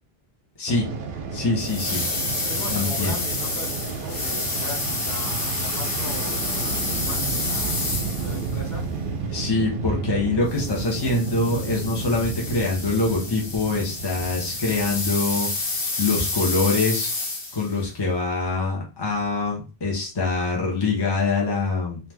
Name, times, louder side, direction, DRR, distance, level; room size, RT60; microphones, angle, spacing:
Fixed-wing aircraft airplane, 0.7-15.8, right 5 dB, 60° right, 0.7 m, -32 dB
voice 1, 1.3-2.0 2.7-3.1 9.3-15.5 16.0-17.1 17.5-22.0, left 3 dB, 25° left, -2 dB, 0.7 m, -24 dB
sound 1, 1.6-8.6 10.5-17.8, left 3 dB, 65° left, 1.0 m, -29 dB
voice 2, 2.5-7.9 8.1-8.8, left 2 dB, 50° left, -2 dB, 1.1 m, -39 dB
2.7 x 2.4 x 3.3 m, 0.31 s
omnidirectional pair, 1.1 m